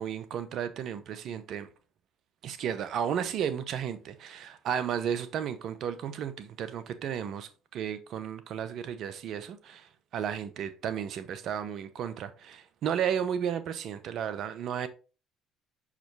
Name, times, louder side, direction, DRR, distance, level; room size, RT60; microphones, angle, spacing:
voice 1, 0.0-1.7 2.4-14.9, right 8 dB, 65° right, 0.9 m, -33 dB
5.8 x 5.0 x 3.4 m
hypercardioid pair, 65°, 0 cm